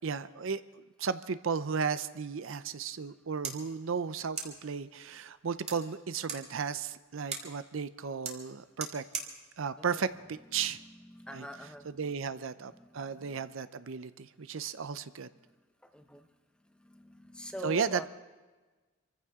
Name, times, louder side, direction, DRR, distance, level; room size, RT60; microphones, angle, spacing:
voice 1, 0.0-9.0 9.6-10.8 11.3-11.5 11.9-15.3 17.6-18.1, right 6 dB, 65° right, 13 dB, 0.5 m, -34 dB
sound 1, 3.0-11.0, right 5 dB, 30° right, 2.0 m, -45 dB
voice 2, 9.8-10.1 10.5-12.2 12.7-13.5 15.4-15.5 15.8-16.3 16.6-18.1, equal, 5° left, 6 dB, 0.8 m, -46 dB
25.5 x 15.0 x 3.6 m, 1.3 s
head